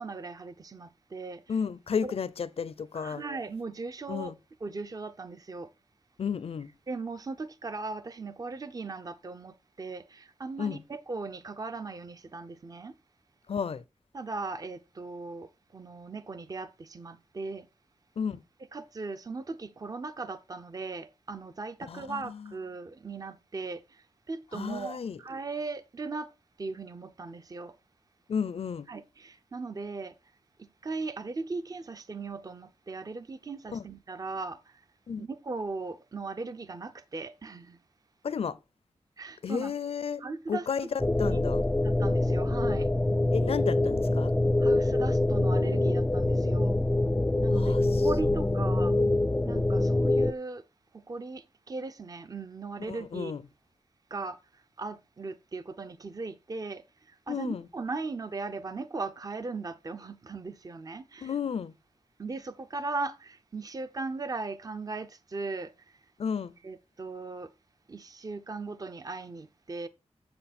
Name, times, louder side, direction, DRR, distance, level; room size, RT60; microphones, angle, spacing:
voice 1, 0.0-1.4 2.0-2.1 2.9-4.3 4.6-5.7 6.9-12.9 14.1-17.7 18.7-23.8 24.3-26.3 26.6-27.7 28.9-30.1 30.8-34.6 35.2-37.8 39.2-39.7 40.2-40.7 41.3-41.6 41.8-42.9 44.6-46.8 47.4-47.8 48.0-48.9 49.4-50.6 50.9-53.3 54.1-54.4 54.8-56.8 57.3-61.3 62.2-65.7 66.6-67.5 67.9-69.9, right 3 dB, 35° right, 0.6 m, -38 dB
voice 2, 1.5-3.2 4.1-4.3 6.2-6.7 10.6-10.8 13.5-13.8 18.2-18.4 21.9-22.5 24.5-25.2 28.3-28.9 33.7-33.8 35.1-35.3 38.2-38.6 39.4-40.9 41.2-41.6 43.3-44.3 47.6-49.1 52.9-53.4 57.3-57.7 61.2-61.7 66.2-66.5, left 6 dB, 60° left, 0.5 m, -33 dB
sound 1, 41.0-50.3, left 2 dB, 10° left, 0.4 m, -25 dB
7.8 x 7.4 x 4.2 m
wide cardioid pair, 130°, 11 cm